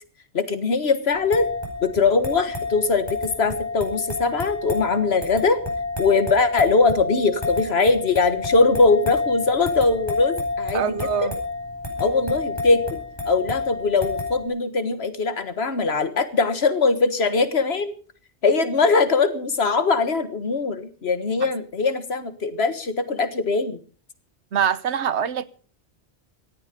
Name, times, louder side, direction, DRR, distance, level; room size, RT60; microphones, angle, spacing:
voice 1, 0.3-1.5 1.8-5.6 6.0-10.9 11.2-11.3 12.0-17.9 18.4-23.8, left 4 dB, 65° left, 1.8 m, -21 dB
sound 1, 1.1-14.5, left 3 dB, 20° left, 4.9 m, -29 dB
voice 2, 10.7-11.4 12.0-12.1 21.4-21.5 24.5-25.4, right 8 dB, 75° right, 1.2 m, -24 dB
18.0 x 13.5 x 5.3 m
omnidirectional pair, 1.2 m